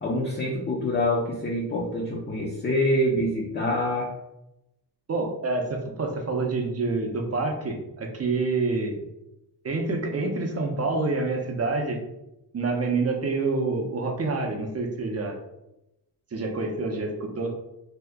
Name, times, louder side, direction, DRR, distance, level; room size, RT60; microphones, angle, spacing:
voice 1, 0.0-4.1, left 1 dB, 25° left, -2 dB, 0.5 m, -26 dB
voice 2, 5.1-9.0 9.6-12.0 12.5-15.4 16.3-17.5, right 3 dB, 35° right, 2 dB, 0.6 m, -27 dB
2.7 x 2.4 x 3.4 m, 0.90 s
wide cardioid pair, 125°, 42 cm